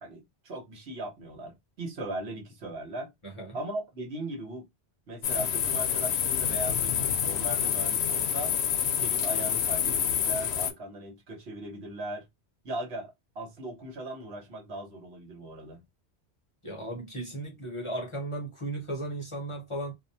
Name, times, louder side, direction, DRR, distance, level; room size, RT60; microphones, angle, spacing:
voice 1, 0.0-3.1 3.5-4.6 5.1-8.5 9.0-12.2 12.6-15.8, right 1 dB, 75° right, 1.2 m, -38 dB
voice 2, 3.2-3.6 16.6-19.9, right 1 dB, 35° left, 0.7 m, -36 dB
sound 1, 5.2-10.7, left 8 dB, 80° left, 0.8 m, -27 dB
2.5 x 2.1 x 2.6 m
omnidirectional pair, 1.1 m